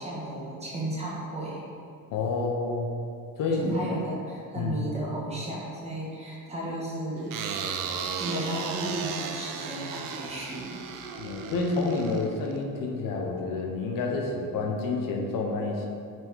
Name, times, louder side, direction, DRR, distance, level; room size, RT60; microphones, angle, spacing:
voice 1, 0.0-1.6 3.5-7.3 8.2-10.8, right 1 dB, 20° right, -5 dB, 1.4 m, -34 dB
voice 2, 2.1-2.9 3.4-3.8 4.5-4.8 11.2-15.9, left 3 dB, 65° left, 0 dB, 0.9 m, -29 dB
sound 1, 7.3-12.6, right 6 dB, 65° right, 0.6 m, -35 dB
6.5 x 4.5 x 4.6 m, 2.5 s
cardioid pair, 155°, 35 cm